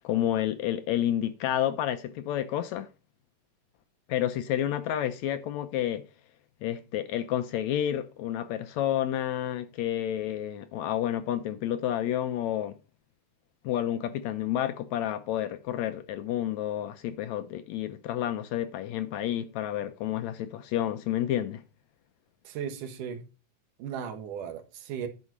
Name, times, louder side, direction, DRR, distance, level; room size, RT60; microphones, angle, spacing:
voice 1, 0.0-2.9 4.1-6.0 6.6-12.8 13.6-21.6, left 11 dB, 80° left, 1.7 m, -30 dB
voice 2, 22.5-23.2 23.8-25.1, right 8 dB, 80° right, 2.8 m, -36 dB
9.6 x 4.8 x 6.0 m
omnidirectional pair, 3.7 m